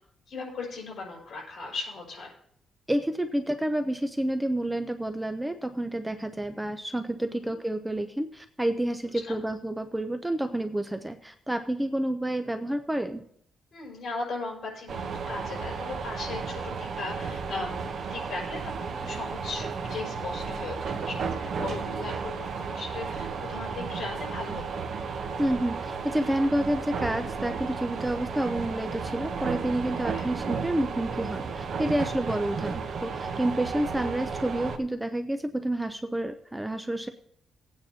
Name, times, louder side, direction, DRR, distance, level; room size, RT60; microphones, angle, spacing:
voice 1, 0.3-2.3 7.3-7.5 9.1-9.4 13.7-24.8 30.1-30.3, left 3 dB, 55° left, -4 dB, 5.0 m, -38 dB
voice 2, 2.9-13.2 25.4-37.1, right 1 dB, 5° right, 8 dB, 0.5 m, -29 dB
sound 1, 14.9-34.8, right 5 dB, 60° right, 0.9 m, -33 dB
19.0 x 9.0 x 2.8 m, 0.67 s
cardioid pair, 140°, 0 cm